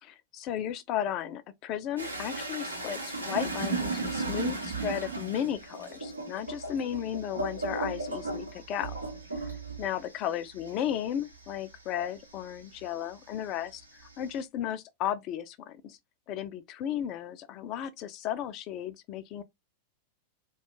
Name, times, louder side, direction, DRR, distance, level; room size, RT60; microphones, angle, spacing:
voice 1, 0.0-9.0 9.4-9.5 9.8-16.0 16.3-19.4, left 10 dB, 40° left, 0.3 m, -34 dB
sound 1, 2.0-12.9 13.3-14.4, right 3 dB, 80° right, 0.7 m, -36 dB
2.3 x 2.2 x 2.8 m
figure-of-eight pair, 90°, 0 cm